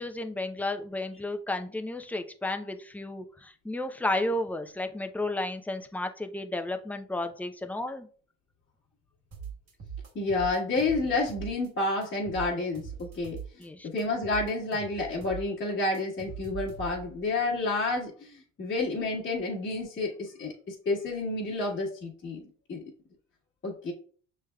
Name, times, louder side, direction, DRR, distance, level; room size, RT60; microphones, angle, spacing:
voice 1, 0.0-8.1 13.6-13.9, left 2 dB, 5° left, 6 dB, 0.5 m, -33 dB
sound 1, 9.3-11.7 12.0-13.7 14.0-17.2, right 7 dB, 55° right, 1.8 m, -41 dB
voice 2, 10.1-22.4 22.7-22.8 23.6-23.9, left 2 dB, 40° left, -4 dB, 1.4 m, -30 dB
6.1 x 3.4 x 2.3 m, 0.43 s
supercardioid pair, 80°, 31 cm